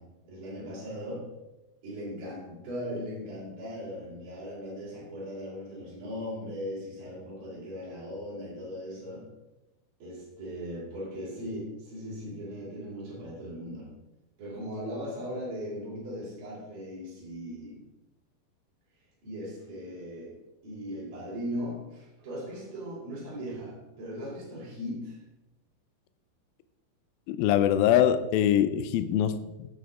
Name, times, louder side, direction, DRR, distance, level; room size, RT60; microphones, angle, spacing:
voice 1, 0.0-1.3 1.8-9.3 10.0-13.9 14.4-17.9 19.2-25.2, equal, 65° right, -7 dB, 4.9 m, -38 dB
voice 2, 27.3-29.8, left 10 dB, 80° left, 11 dB, 2.2 m, -24 dB
16.5 x 7.2 x 3.6 m, 1.0 s
omnidirectional pair, 4.6 m